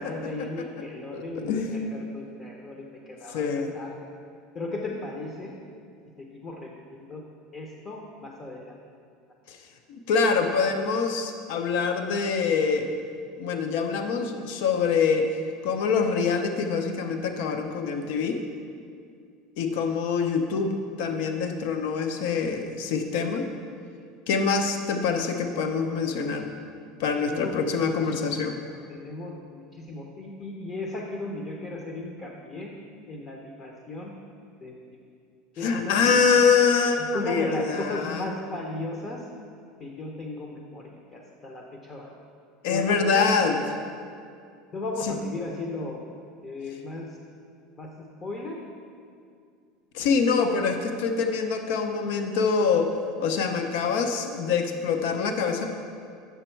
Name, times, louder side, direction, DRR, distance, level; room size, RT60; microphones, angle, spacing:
voice 1, 0.0-4.1 4.5-5.6 6.2-7.2 7.5-8.7 27.2-28.3 28.7-32.7 33.1-34.1 34.6-34.8 35.6-36.3 37.0-39.3 39.8-42.3 42.7-43.3 44.7-46.0 46.4-47.2 47.8-48.6, left 2 dB, 20° left, 0 dB, 0.6 m, -36 dB
voice 2, 3.3-3.7 9.5-9.6 10.1-12.9 13.4-18.4 19.6-20.7 21.0-23.4 24.3-26.5 27.0-28.6 35.6-38.2 42.6-43.6 45.1-45.2 49.9-52.9 53.2-55.8, left 5 dB, 65° left, 5 dB, 0.6 m, -25 dB
8.0 x 6.1 x 4.4 m, 2.3 s
supercardioid pair, 165°, 0 cm